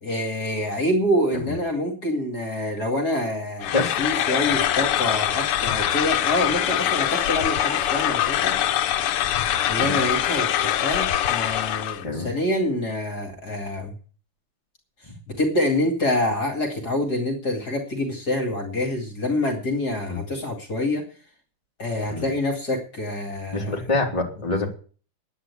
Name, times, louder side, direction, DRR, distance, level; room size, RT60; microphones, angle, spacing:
voice 1, 0.0-8.6 9.7-13.9 15.3-21.0 21.8-23.8, left 1 dB, 45° left, 3 dB, 2.8 m, -26 dB
sound 1, 3.6-12.0, left 11 dB, 85° left, 1.8 m, -23 dB
voice 2, 23.5-24.7, left 2 dB, 15° left, 0 dB, 2.8 m, -26 dB
10.5 x 9.8 x 8.3 m, 0.40 s
omnidirectional pair, 2.4 m